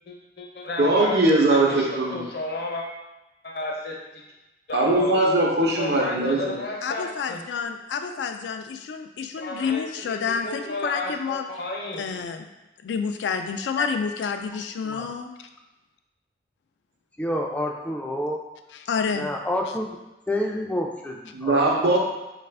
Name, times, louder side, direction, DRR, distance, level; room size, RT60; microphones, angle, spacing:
voice 1, 0.1-2.9 3.4-4.2 4.7-5.2 5.8-7.4 9.4-12.0, left 2 dB, 60° left, -1 dB, 0.7 m, -32 dB
voice 2, 0.8-2.2 4.7-6.6 21.3-22.0, right 2 dB, 70° right, -1 dB, 0.7 m, -21 dB
voice 3, 6.8-11.5 12.0-12.5 12.8-15.5 18.8-19.3, left 6 dB, 90° left, 6 dB, 0.3 m, -29 dB
voice 4, 17.2-18.4 19.1-20.0 20.3-21.6, left 1 dB, 10° left, 0 dB, 0.3 m, -28 dB
4.1 x 2.4 x 3.3 m, 1.0 s
head